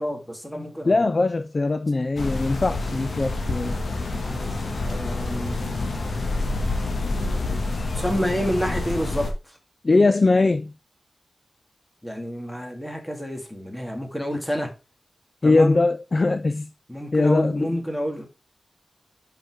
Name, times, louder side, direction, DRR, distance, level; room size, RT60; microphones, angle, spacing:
voice 1, 0.0-1.1 4.0-5.6 8.0-9.6 12.0-14.7 15.4-15.8 16.9-18.3, equal, 5° left, 1.9 m, -29 dB
voice 2, 0.9-3.8 9.8-10.7 15.4-16.7 17.1-17.7, left 3 dB, 35° left, 0.3 m, -21 dB
sound 1, 2.2-9.3, left 2 dB, 60° left, 1.6 m, -27 dB
5.7 x 5.4 x 4.8 m
wide cardioid pair, 125°, 0 cm